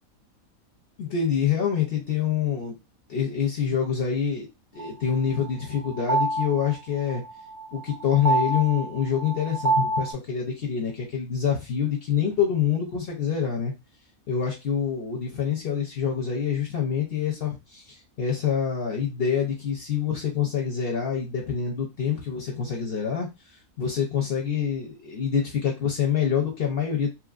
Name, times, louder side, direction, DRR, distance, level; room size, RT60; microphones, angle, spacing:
voice 1, 1.0-2.7 3.1-4.5 4.7-7.2 7.7-13.7 14.3-23.3 23.8-27.1, left 8 dB, 55° left, 0 dB, 0.7 m, -26 dB
sound 1, 4.8-10.1, right 3 dB, 60° right, 0.7 m, -27 dB
3.1 x 2.5 x 2.4 m, 0.24 s
omnidirectional pair, 1.5 m